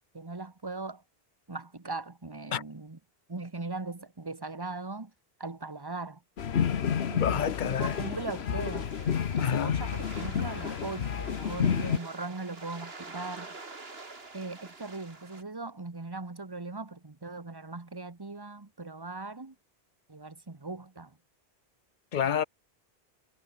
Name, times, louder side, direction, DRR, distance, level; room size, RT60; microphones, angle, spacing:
voice 1, 0.1-1.0 1.5-3.0 3.3-5.1 5.4-6.2 7.1-8.9 9.3-13.5 14.3-19.5 20.1-21.2, right 3 dB, 25° right, 1.3 m, -39 dB
sound 1, 6.4-12.0, left 8 dB, 85° left, 1.3 m, -30 dB
voice 2, 7.2-8.1 9.3-9.8 22.1-22.4, left 8 dB, 55° left, 0.8 m, -29 dB
sound 2, 7.4-15.4, right 3 dB, 75° right, 2.8 m, -47 dB
omnidirectional pair, 1.0 m